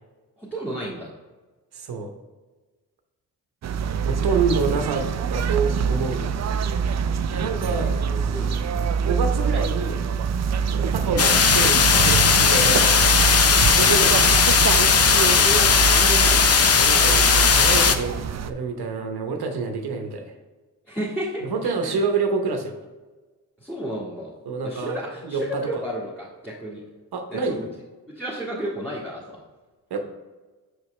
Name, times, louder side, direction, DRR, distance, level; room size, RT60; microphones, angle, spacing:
voice 1, 0.4-1.1 7.7-8.5 15.0-16.7 20.9-21.9 23.6-24.3 24.6-26.8 27.3-27.6 28.1-29.4, right 1 dB, 5° left, -9 dB, 1.9 m, -32 dB
voice 2, 1.7-2.2 4.0-6.3 7.0-8.3 8.8-10.0 10.7-13.0 13.7-14.4 16.7-18.2 18.4-20.3 21.4-22.7 24.5-25.8 27.1-27.7 29.9-30.0, right 4 dB, 65° right, 4 dB, 1.0 m, -27 dB
sound 1, 3.6-18.5, right 6 dB, 40° right, 0.4 m, -25 dB
sound 2, 11.2-18.0, left 6 dB, 35° left, 0.6 m, -17 dB
6.4 x 4.8 x 3.2 m, 1.2 s
supercardioid pair, 60°, 41 cm